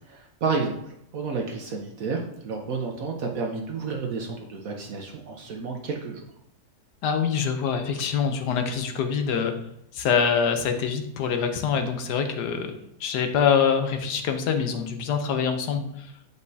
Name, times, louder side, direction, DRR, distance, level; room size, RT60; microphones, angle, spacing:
voice 1, 0.1-6.2, right 4 dB, 65° right, 2 dB, 1.0 m, -31 dB
voice 2, 7.0-9.5 9.9-12.7 13.0-16.1, left 6 dB, 80° left, 6 dB, 1.4 m, -25 dB
8.1 x 5.2 x 2.7 m, 0.75 s
omnidirectional pair, 1.7 m